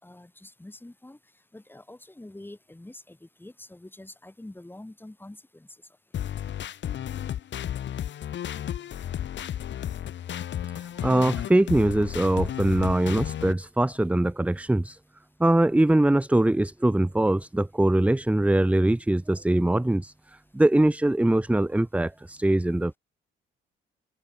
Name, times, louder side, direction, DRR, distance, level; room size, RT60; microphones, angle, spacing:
voice 1, 0.0-1.2 1.5-5.7, left 1 dB, 10° left, 7.9 m, -46 dB
sound 1, 6.1-13.5, left 10 dB, 65° left, 3.2 m, -33 dB
voice 2, 10.7-15.0 15.4-20.1 20.5-22.9, right 1 dB, 5° right, 0.8 m, -22 dB
open air
cardioid pair, 90°, 20 cm